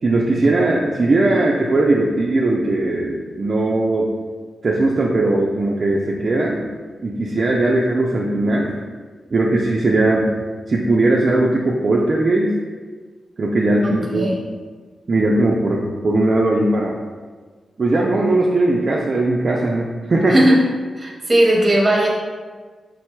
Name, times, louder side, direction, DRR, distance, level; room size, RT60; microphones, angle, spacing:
voice 1, 0.0-4.1 4.6-6.7 7.0-8.7 9.3-10.4 10.7-12.5 13.4-14.3 15.1-16.9 17.8-20.3, right 2 dB, 40° right, -3 dB, 0.4 m, -18 dB
voice 2, 13.8-14.4 20.3-20.7 21.0-22.1, right 1 dB, 20° right, -2 dB, 0.8 m, -17 dB
4.7 x 2.2 x 4.4 m, 1.5 s
wide cardioid pair, 150°, 0 cm